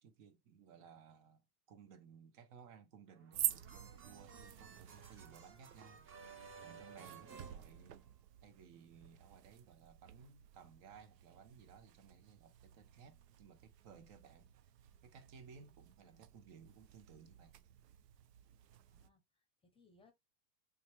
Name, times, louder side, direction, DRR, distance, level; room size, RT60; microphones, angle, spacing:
voice 1, 0.0-1.4 1.7-6.0 6.6-8.0 8.4-14.5 15.0-17.6, right 6 dB, 55° right, 1.0 m, -59 dB
sound 1, 3.1-8.4, right 5 dB, 25° right, 0.8 m, -57 dB
sound 2, 3.3-19.1, right 11 dB, 85° right, 0.6 m, -49 dB
voice 2, 4.5-5.2 16.0-16.2 18.9-20.1, left 3 dB, 10° left, 0.7 m, -71 dB
3.4 x 2.8 x 3.2 m
hypercardioid pair, 110°, 47 cm